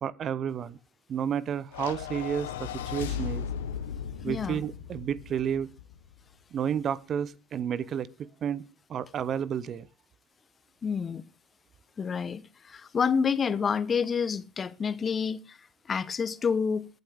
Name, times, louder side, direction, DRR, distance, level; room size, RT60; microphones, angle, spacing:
voice 1, 0.0-0.8 1.1-3.5 4.2-5.7 6.5-8.1 8.4-8.6 8.9-9.9, right 8 dB, 45° right, 0.7 m, -31 dB
sound 1, 1.7-6.1, left 8 dB, 85° left, 1.1 m, -36 dB
voice 2, 4.2-4.6 10.8-11.2 12.0-15.6 15.9-16.9, left 6 dB, 35° left, 0.9 m, -28 dB
22.5 x 7.9 x 3.5 m
hypercardioid pair, 65°, 0 cm